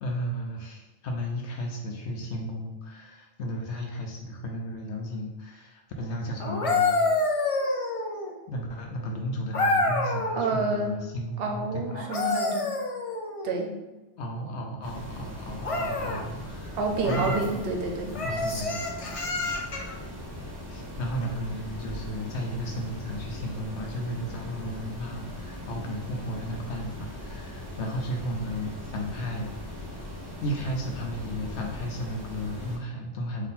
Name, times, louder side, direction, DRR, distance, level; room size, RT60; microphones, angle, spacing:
voice 1, 0.0-7.0 8.5-12.0 14.2-17.6 18.2-18.8 20.7-29.7 30.4-33.5, equal, 70° left, 1 dB, 0.9 m, -34 dB
sound 1, 6.4-8.4 9.5-10.5 11.9-13.5 15.6-16.2 17.0-17.5 18.1-20.0 21.8-22.0, left 2 dB, 50° left, 0.4 m, -27 dB
voice 2, 10.3-11.0 11.4-12.7 13.4-13.7 16.8-18.1, right 3 dB, 60° right, 3 dB, 0.8 m, -28 dB
sound 2, 14.8-32.8, left 1 dB, 20° right, 0.8 m, -40 dB
3.7 x 2.7 x 4.0 m, 1.1 s
omnidirectional pair, 1.2 m